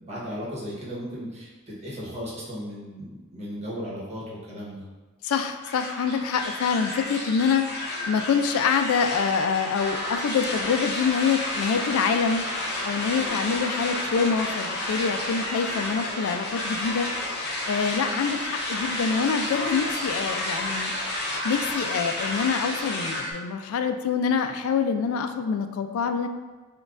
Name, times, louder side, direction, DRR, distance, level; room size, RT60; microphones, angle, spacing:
voice 1, 0.0-4.8, equal, 30° right, -6 dB, 1.0 m, -36 dB
voice 2, 5.2-12.5 12.8-17.1 17.7-20.9 21.4-26.3, left 6 dB, 85° left, 8 dB, 0.3 m, -26 dB
sound 1, 5.6-23.3, left 1 dB, 50° left, 0.7 m, -31 dB
6.1 x 2.3 x 2.4 m, 1.3 s
head